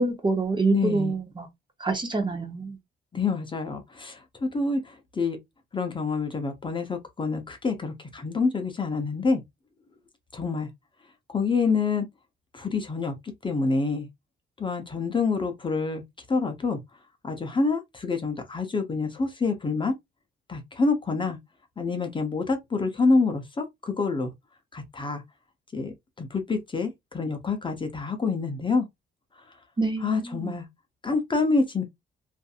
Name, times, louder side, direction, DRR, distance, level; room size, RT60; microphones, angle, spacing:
voice 1, 0.0-1.5 1.8-2.8 29.8-30.5, right 3 dB, 25° right, 0.8 m, -26 dB
voice 2, 0.7-1.1 3.1-5.4 5.7-9.4 10.3-10.7 11.3-12.1 12.5-13.1 13.4-14.1 14.6-16.0 16.3-16.8 17.2-19.9 20.5-21.4 21.8-24.3 24.7-25.2 25.7-28.9 30.0-30.7 31.0-31.8, left 4 dB, 25° left, 0.7 m, -27 dB
2.6 x 2.5 x 2.4 m
cardioid pair, 90°, 20 cm